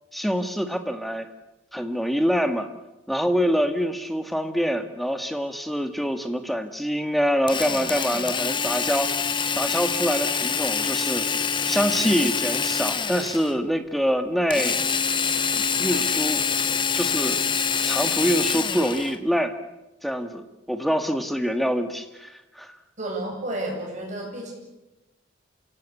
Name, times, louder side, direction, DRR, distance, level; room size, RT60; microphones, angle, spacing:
voice 1, 0.1-1.3 1.7-2.7 3.1-9.2 9.6-11.3 11.7-14.8 15.5-16.4 16.9-17.4 17.8-19.5 20.0-20.4 20.7-22.7, equal, ahead, 7 dB, 1.7 m, -25 dB
Drill, 7.5-13.6 14.5-19.2, left 6 dB, 25° left, 1.0 m, -25 dB
voice 2, 23.0-24.5, right 1 dB, 40° right, 0 dB, 7.9 m, -31 dB
28.0 x 17.0 x 8.4 m, 1.0 s
head